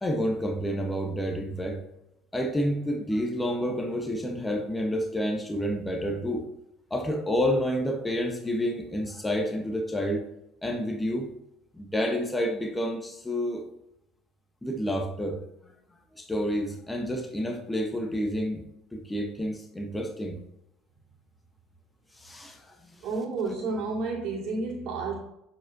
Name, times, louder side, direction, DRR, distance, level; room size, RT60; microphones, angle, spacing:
voice 1, 0.0-1.8 2.3-6.5 6.9-10.2 10.6-11.3 11.7-13.7 14.6-15.7 16.1-18.6 18.9-20.4 22.1-23.1, equal, 10° left, 3 dB, 1.1 m, -29 dB
voice 2, 23.0-25.2, right 3 dB, 60° right, -3 dB, 2.3 m, -31 dB
7.2 x 5.1 x 2.7 m, 0.80 s
supercardioid pair, 80°, 0 cm